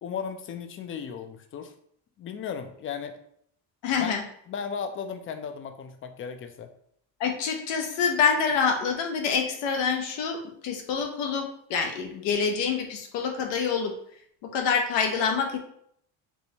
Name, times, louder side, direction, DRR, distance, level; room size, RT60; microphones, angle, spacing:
voice 1, 0.0-1.7 2.2-3.2 4.0-4.2 4.5-6.7, left 7 dB, 30° left, 8 dB, 0.4 m, -35 dB
voice 2, 3.8-4.2 7.2-13.9 14.4-15.6, left 6 dB, 75° left, 4 dB, 0.6 m, -26 dB
4.4 x 2.1 x 2.8 m, 0.66 s
cardioid pair, 100°, 43 cm